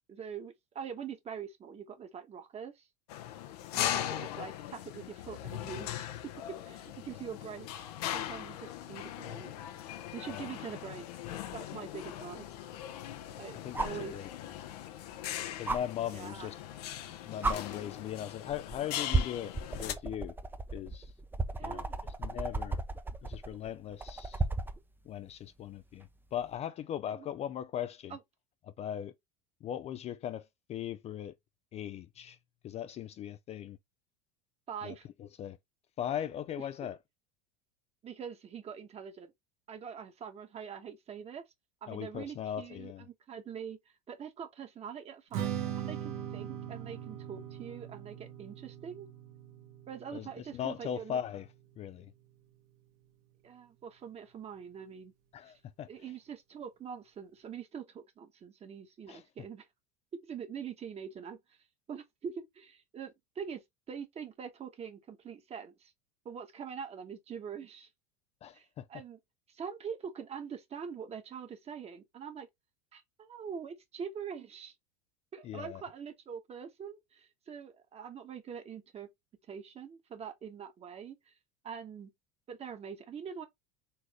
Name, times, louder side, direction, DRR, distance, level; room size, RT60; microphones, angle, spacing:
voice 1, 0.1-2.9 3.7-6.1 6.7-9.5 10.1-11.0 11.5-12.5 13.4-14.2 16.1-16.5 21.6-22.0 27.1-27.3 28.1-28.2 34.7-35.1 38.0-39.3 39.7-41.4 41.8-43.8 44.1-45.5 45.8-49.1 49.9-51.2 53.4-55.1 55.5-55.6 55.9-59.7 60.2-61.4 61.9-63.6 63.9-65.9 66.2-67.9 68.5-69.2 69.5-72.5 72.9-74.7 75.3-79.1 79.5-81.3 81.6-82.1 82.5-83.4, right 7 dB, 30° right, 1.3 m, -44 dB
sound 1, 3.1-19.9, left 12 dB, 75° left, 0.8 m, -40 dB
sound 2, 11.5-11.6 13.7-14.1 15.7-15.8 16.9-17.0 17.4-17.6 18.5-18.8 19.1-24.8 26.4-26.5, right 3 dB, 10° right, 0.6 m, -33 dB
voice 2, 13.6-14.3 14.6-14.7 15.6-16.6 17.1-20.4 20.7-21.1 21.6-22.8 23.2-24.4 25.1-28.2 28.8-29.1 29.6-31.3 31.7-32.4 32.6-33.8 34.8-35.6 36.0-37.0 41.9-43.0 50.1-51.5 51.8-52.1 55.3-55.9 59.1-59.2 68.4-69.0 75.4-75.8, left 10 dB, 35° left, 0.4 m, -39 dB
Strum, 45.3-51.6, right 10 dB, 70° right, 1.6 m, -40 dB
4.0 x 3.2 x 3.0 m
supercardioid pair, 105°, 20 cm